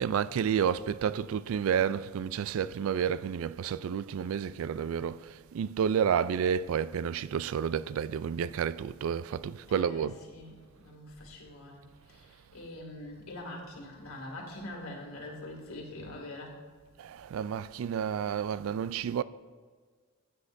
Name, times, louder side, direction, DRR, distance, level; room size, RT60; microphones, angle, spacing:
voice 1, 0.0-5.2 5.5-10.2 17.0-19.2, right 7 dB, 75° right, 0.3 m, -30 dB
voice 2, 9.7-11.8 12.1-16.6, left 1 dB, 85° left, 2.3 m, -44 dB
15.0 x 8.4 x 2.6 m
head